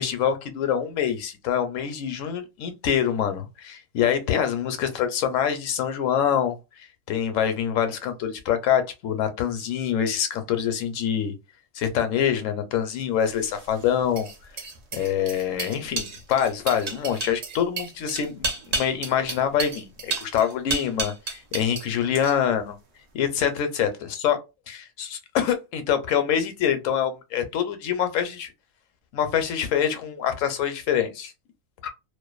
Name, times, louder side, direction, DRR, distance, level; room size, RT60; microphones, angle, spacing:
voice 1, 0.0-11.3 11.7-14.3 14.9-22.8 23.1-24.4 24.7-28.5 29.1-31.3 31.8-31.9, left 9 dB, 80° left, 1.0 m, -25 dB
sound 1, 13.3-21.9 22.2-22.6, right 3 dB, 60° right, 0.4 m, -32 dB
2.5 x 2.2 x 2.3 m
omnidirectional pair, 1.4 m